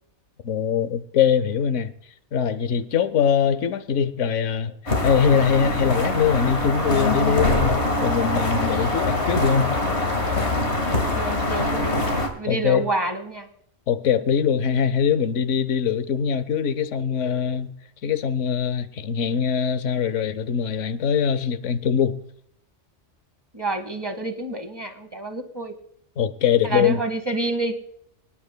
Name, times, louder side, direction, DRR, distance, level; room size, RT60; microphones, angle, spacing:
voice 1, 0.4-1.9 2.3-4.8 5.0-9.8 12.5-12.8 13.9-17.7 18.0-22.2 26.2-27.0, left 7 dB, 90° left, 1.1 m, -22 dB
sound 1, 4.9-12.3, left 2 dB, 65° left, 2.2 m, -23 dB
voice 2, 11.1-12.0 12.3-13.5 23.5-25.7 26.6-27.8, right 2 dB, 20° right, 1.1 m, -28 dB
25.0 x 10.0 x 2.2 m
omnidirectional pair, 1.2 m